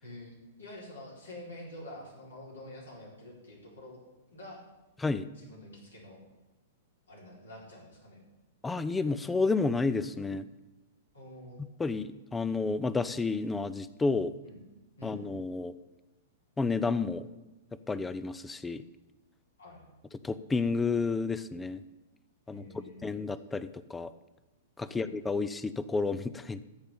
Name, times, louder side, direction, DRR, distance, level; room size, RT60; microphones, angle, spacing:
voice 1, 0.0-4.0 4.3-4.6 5.3-6.2 7.1-8.2 11.1-11.7 14.4-14.6 15.0-15.2 19.6-19.8 22.5-23.2 24.9-25.1, left 1 dB, 70° left, -3 dB, 4.1 m, -47 dB
voice 2, 8.6-10.5 11.6-14.4 15.0-15.7 16.6-17.3 17.9-18.8 20.2-21.8 22.5-24.1 24.8-26.6, left 4 dB, 10° left, 15 dB, 0.5 m, -31 dB
13.5 x 5.2 x 8.4 m, 1.0 s
figure-of-eight pair, 105°, 0 cm